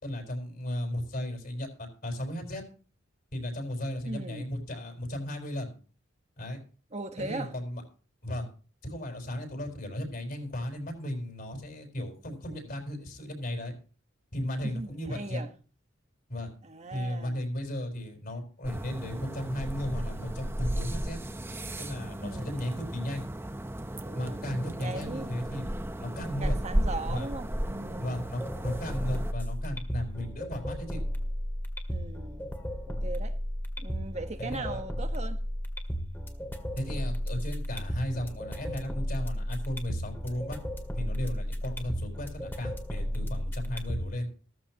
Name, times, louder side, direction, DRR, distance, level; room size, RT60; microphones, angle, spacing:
voice 1, 0.0-2.6 3.3-5.7 6.4-6.6 7.2-7.8 8.2-8.5 8.8-13.7 14.3-15.4 16.3-16.5 16.9-21.2 21.8-23.2 24.1-25.7 26.0-26.5 27.1-27.3 28.0-31.0 34.4-34.8 36.8-40.6 40.9-44.2, left 1 dB, 50° left, 4.6 m, -35 dB
voice 2, 4.0-4.5 6.9-7.5 14.6-15.5 16.6-17.4 22.2-22.7 24.0-25.3 26.4-28.2 31.9-32.5 32.9-33.4 33.8-35.4, right 2 dB, 35° right, 1.3 m, -39 dB
sound 1, 18.6-29.3, right 1 dB, 10° right, 0.8 m, -34 dB
sound 2, 28.1-44.1, equal, 10° left, 2.0 m, -34 dB
15.0 x 14.0 x 3.0 m
head